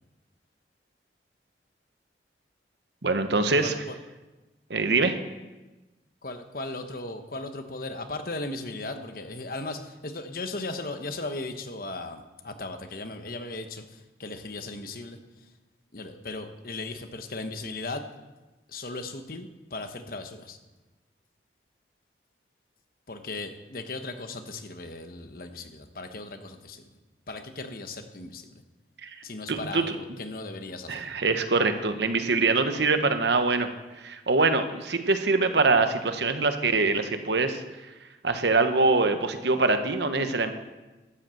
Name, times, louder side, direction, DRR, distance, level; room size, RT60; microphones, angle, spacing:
voice 1, 3.0-3.7 4.7-5.2 29.0-29.1 29.5-30.0 30.9-33.7 34.0-37.6 38.2-40.5, right 3 dB, 80° right, 8 dB, 1.1 m, -24 dB
voice 2, 3.6-4.0 6.2-15.2 15.9-18.1 18.7-20.6 23.1-27.0 27.3-28.6 29.2-30.9, left 2 dB, 55° left, 7 dB, 1.2 m, -37 dB
13.0 x 8.0 x 7.6 m, 1.1 s
head